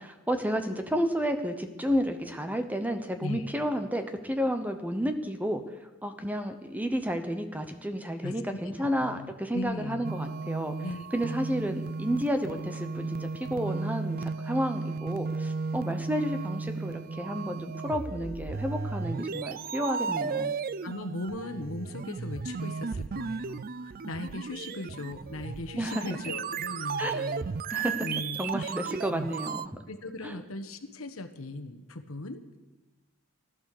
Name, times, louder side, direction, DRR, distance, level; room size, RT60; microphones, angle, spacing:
voice 1, 0.0-5.8 6.0-10.7 11.1-20.5 25.8-26.0 27.0-27.2 27.7-28.1 28.4-29.8 30.2-30.3, equal, 10° right, 7 dB, 0.9 m, -31 dB
voice 2, 9.0-10.0 10.8-11.4 20.8-27.5 28.0-28.7 29.9-32.4, left 2 dB, 75° left, 8 dB, 1.2 m, -38 dB
sound 1, 10.0-29.7, right 5 dB, 45° right, 0.4 m, -35 dB
15.5 x 12.0 x 6.7 m, 1.1 s
head